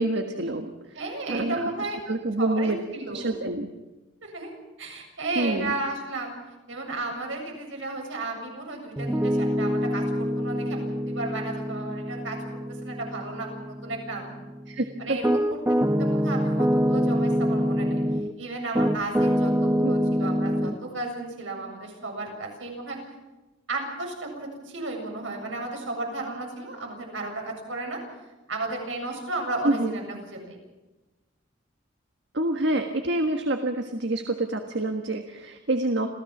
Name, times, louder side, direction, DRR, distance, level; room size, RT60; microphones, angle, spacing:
voice 1, 0.0-1.0 1.3-1.7 2.1-2.8 3.1-3.7 5.3-5.7 14.7-15.2 19.8-19.9 29.6-30.0 32.3-36.1, right 2 dB, 65° right, 5 dB, 1.6 m, -27 dB
voice 2, 0.9-2.0 2.4-3.3 4.2-4.5 4.8-6.4 6.7-14.3 15.0-18.0 18.4-23.0 23.7-28.0 28.5-30.6, right 2 dB, 80° right, 2 dB, 7.3 m, -34 dB
Piano, 9.0-18.3 18.7-20.7, equal, 15° right, 1.1 m, -25 dB
27.5 x 16.5 x 7.3 m, 1.1 s
head